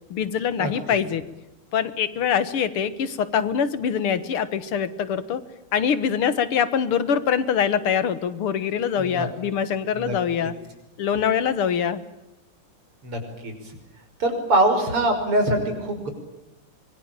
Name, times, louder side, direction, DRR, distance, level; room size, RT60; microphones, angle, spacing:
voice 1, 0.1-1.3 1.7-5.4 5.7-10.5 11.0-12.0, left 7 dB, 80° left, 14 dB, 2.3 m, -24 dB
voice 2, 9.0-9.3 10.0-10.2 13.0-13.5 14.2-16.1, right 1 dB, 85° right, 5 dB, 6.4 m, -23 dB
25.0 x 23.0 x 9.0 m, 0.96 s
omnidirectional pair, 2.4 m